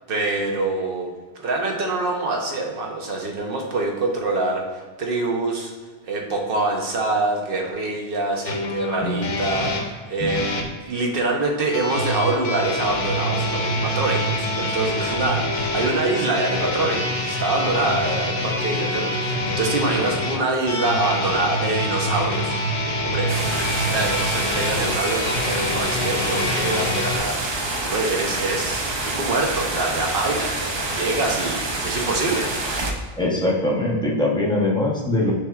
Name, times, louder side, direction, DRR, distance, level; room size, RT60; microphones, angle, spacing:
voice 1, 0.1-1.1 1.4-5.7 6.0-22.5 23.0-23.3 23.9-27.4 27.8-32.5, right 2 dB, 60° right, 1 dB, 0.9 m, -25 dB
sound 1, 8.4-10.7 11.7-27.2, left 1 dB, 75° left, 0.9 m, -25 dB
sound 2, 23.3-32.9, right 2 dB, 45° right, 0.3 m, -27 dB
voice 2, 33.2-35.3, left 1 dB, 5° left, -3 dB, 0.6 m, -21 dB
6.4 x 3.0 x 2.3 m, 1.4 s
omnidirectional pair, 1.1 m